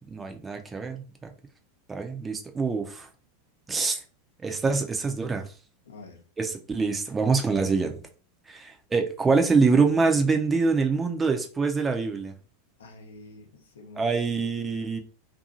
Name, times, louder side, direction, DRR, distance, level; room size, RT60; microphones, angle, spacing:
voice 1, 0.1-1.0 1.9-3.1 3.7-4.0 4.4-5.4 6.4-8.0 8.5-12.3 14.0-15.0, right 4 dB, 15° right, 0.5 m, -25 dB
voice 2, 5.8-6.3 12.8-14.4 14.7-15.0, left 3 dB, 70° left, 0.7 m, -48 dB
2.6 x 2.6 x 2.5 m
figure-of-eight pair, 85°, 0 cm